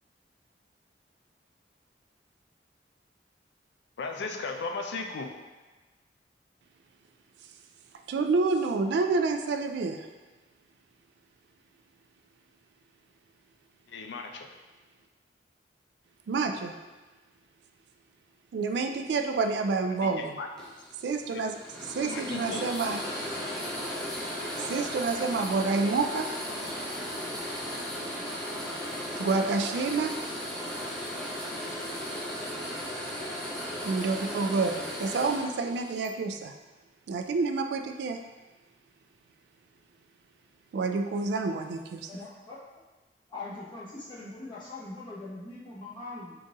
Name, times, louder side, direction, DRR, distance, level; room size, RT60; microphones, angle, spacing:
voice 1, 4.0-5.3 13.9-14.5 20.0-20.5 21.3-21.4 22.0-22.7, left 3 dB, 75° left, 4 dB, 0.4 m, -36 dB
voice 2, 8.1-10.1 16.3-16.8 18.5-20.4 21.0-21.5 21.9-23.0 24.6-26.3 29.2-30.2 33.8-36.5 37.1-38.2 40.7-42.1, right 4 dB, 70° right, 7 dB, 0.3 m, -28 dB
sound 1, 20.6-36.1, equal, 5° left, 0.6 m, -36 dB
voice 3, 42.1-42.6 43.3-46.3, left 2 dB, 25° left, -8 dB, 1.0 m, -41 dB
3.9 x 2.5 x 3.7 m, 1.2 s
head